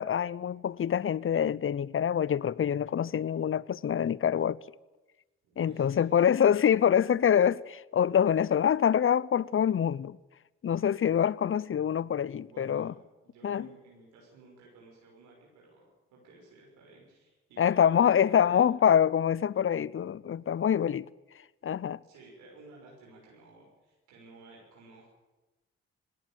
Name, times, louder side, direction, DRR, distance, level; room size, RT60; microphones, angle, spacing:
voice 1, 0.0-4.6 5.6-10.2 10.6-12.9 13.4-13.7 17.6-21.1 21.6-22.0, left 8 dB, 45° left, 0.8 m, -25 dB
voice 2, 5.4-6.3 12.4-12.9 13.2-18.6 22.0-25.1, right 3 dB, 85° right, 6.2 m, -54 dB
19.5 x 17.5 x 9.1 m
hypercardioid pair, 45°, 30 cm